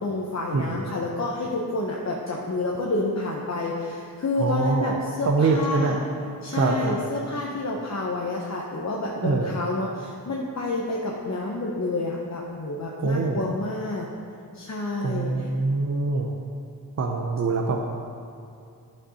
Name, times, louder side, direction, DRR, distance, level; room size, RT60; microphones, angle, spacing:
voice 1, 0.0-6.0 6.4-14.1 14.5-15.5, left 2 dB, 45° left, -2 dB, 0.9 m, -29 dB
voice 2, 4.4-5.0 5.2-6.0 6.5-7.0 9.2-9.5 13.0-13.4 15.0-16.3 17.0-17.8, right 3 dB, 45° right, 2 dB, 0.7 m, -24 dB
11.5 x 5.7 x 4.2 m, 2.5 s
wide cardioid pair, 100°, 38 cm